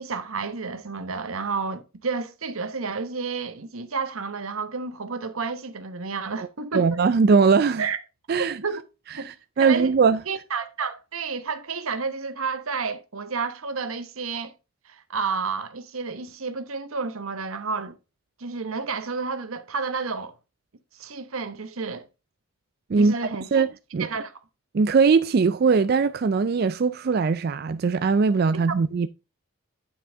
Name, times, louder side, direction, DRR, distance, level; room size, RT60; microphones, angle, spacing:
voice 1, 0.0-7.0 7.8-8.0 8.5-8.8 9.2-9.3 9.6-9.9 10.3-14.5 14.9-17.9 18.4-20.3 20.9-22.1 23.0-23.7 24.0-24.3, right 4 dB, 80° right, 1.1 m, -31 dB
voice 2, 6.7-7.8 8.3-8.6 9.2-10.2 22.9-23.2 23.5-23.7 23.9-24.1 24.7-29.1, right 5 dB, 45° right, 0.4 m, -20 dB
9.5 x 6.1 x 3.5 m
head